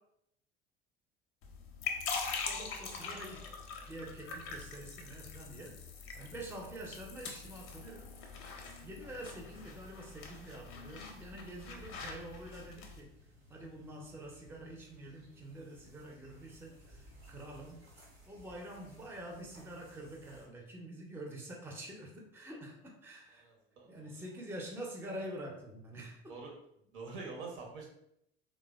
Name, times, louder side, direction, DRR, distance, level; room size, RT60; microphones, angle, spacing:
sound 1, 1.4-13.0, left 5 dB, 45° left, 0.5 m, -43 dB
voice 1, 2.5-3.5 3.9-5.8 6.2-8.1 8.6-13.1 13.5-17.8 18.3-23.4 23.9-26.2, right 1 dB, 5° right, 0 dB, 0.5 m, -46 dB
sound 2, 11.0-20.5, left 1 dB, 90° right, 0.9 m, -59 dB
voice 2, 23.3-24.4 25.0-25.1 26.3-26.5 26.9-27.9, right 4 dB, 65° right, 1 dB, 0.8 m, -46 dB
3.1 x 2.0 x 2.2 m, 0.75 s
figure-of-eight pair, 65°, 30 cm